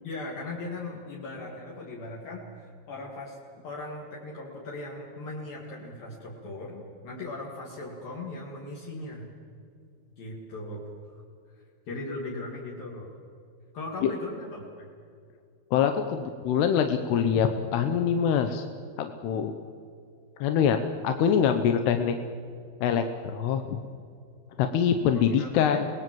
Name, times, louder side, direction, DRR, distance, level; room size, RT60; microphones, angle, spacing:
voice 1, 0.0-3.4 3.6-9.3 10.2-10.8 11.1-11.2 11.5-13.1 13.7-14.9 25.1-25.9, left 2 dB, 55° left, -3 dB, 4.1 m, -38 dB
voice 2, 15.7-18.6 19.0-19.6 20.4-20.8 21.0-22.1 22.8-23.8 24.6-25.9, left 8 dB, 75° left, 7 dB, 2.9 m, -24 dB
27.0 x 19.5 x 7.8 m, 2.3 s
omnidirectional pair, 5.2 m